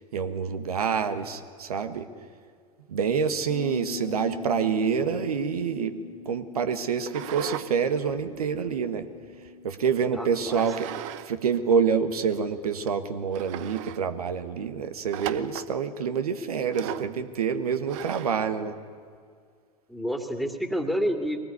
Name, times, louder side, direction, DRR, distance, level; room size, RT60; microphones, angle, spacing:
voice 1, 0.1-2.1 2.9-5.9 6.2-9.1 9.6-10.9 11.3-18.8, right 6 dB, 75° right, 9 dB, 1.4 m, -27 dB
Bass guitar, 3.5-9.7, left 6 dB, 80° left, 1.3 m, -42 dB
sound 1, 7.0-7.7 8.1-9.5 10.5-11.3 11.6-11.7 12.3-12.4 12.9-13.0 13.3-14.0 15.1-15.7 16.7-17.1 17.9-18.4, right 12 dB, 55° right, 1.0 m, -37 dB
voice 2, 10.1-10.7 19.9-21.4, equal, ahead, 5 dB, 2.5 m, -29 dB
22.5 x 19.5 x 9.7 m, 2.1 s
figure-of-eight pair, 85°, 19 cm